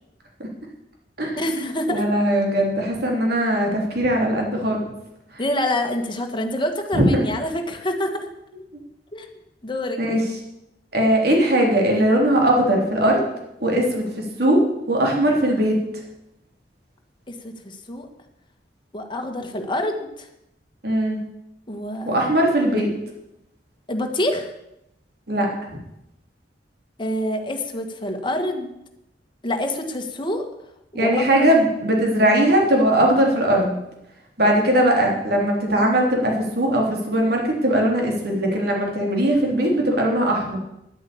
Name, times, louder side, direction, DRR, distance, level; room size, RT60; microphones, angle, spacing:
voice 1, 1.4-2.0 5.4-8.3 9.1-9.3 9.6-10.0 17.3-18.1 18.9-20.3 21.7-22.3 23.9-24.5 27.0-28.7 29.4-30.5 30.9-31.5, left 1 dB, 30° left, 5 dB, 1.6 m, -26 dB
voice 2, 1.9-4.8 6.9-7.2 8.7-8.8 10.0-10.2 10.9-13.3 13.6-15.8 20.8-21.2 22.0-22.9 25.3-25.5 30.9-33.8 34.4-40.6, right 1 dB, 65° right, 0 dB, 3.5 m, -19 dB
10.5 x 8.7 x 8.6 m, 0.86 s
head